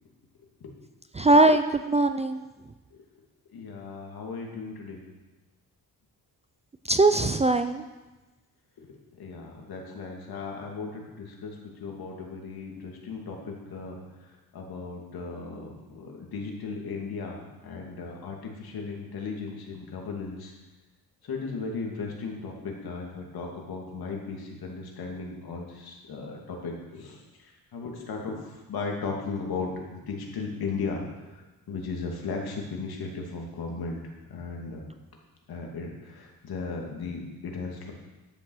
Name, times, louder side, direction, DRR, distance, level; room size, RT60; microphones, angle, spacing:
voice 1, 1.1-2.4 6.9-7.8, right 2 dB, 20° right, 8 dB, 0.4 m, -21 dB
voice 2, 3.5-5.0 8.8-20.5 21.2-34.0 34.3-34.8 35.5-37.9, left 4 dB, 70° left, 0 dB, 2.6 m, -36 dB
11.5 x 7.4 x 6.4 m, 1.1 s
wide cardioid pair, 150°, 38 cm